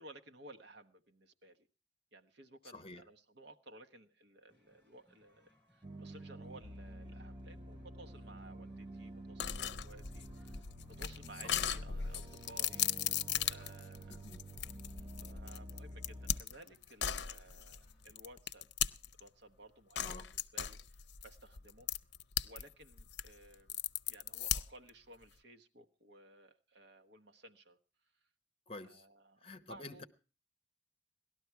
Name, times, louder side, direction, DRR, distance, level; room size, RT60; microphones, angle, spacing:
voice 1, 0.0-1.7 2.1-14.2 15.2-18.6 19.2-21.9 22.4-23.8 24.1-27.8 28.8-30.0, right 1 dB, 65° right, 1.1 m, -57 dB
voice 2, 2.7-3.0 11.4-11.7 14.1-14.4 20.0-20.3 28.7-29.0 29.4-30.0, left 2 dB, 30° left, 0.9 m, -49 dB
sound 1, 4.5-18.1, left 1 dB, 10° left, 5.5 m, -73 dB
sound 2, 5.8-16.4, right 1 dB, 25° right, 0.7 m, -50 dB
sound 3, 9.4-19.3 20.0-22.6 22.9-24.9, left 9 dB, 70° left, 0.6 m, -37 dB
18.0 x 12.5 x 4.6 m
head